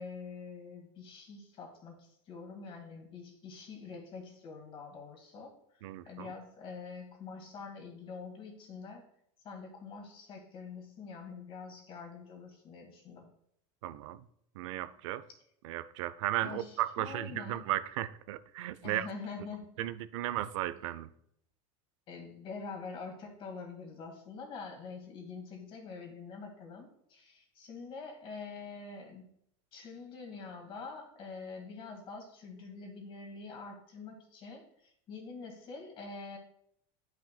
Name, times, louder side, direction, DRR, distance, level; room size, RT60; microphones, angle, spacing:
voice 1, 0.0-9.0 9.4-13.3 16.4-17.7 18.8-19.9 22.1-29.3 29.7-36.4, left 4 dB, 35° left, 1.8 m, -45 dB
voice 2, 5.8-6.3 13.8-14.3 14.5-15.3 15.6-19.1 19.8-21.1, right 14 dB, 90° right, 0.5 m, -35 dB
10.5 x 6.0 x 2.2 m
supercardioid pair, 155°, 16 cm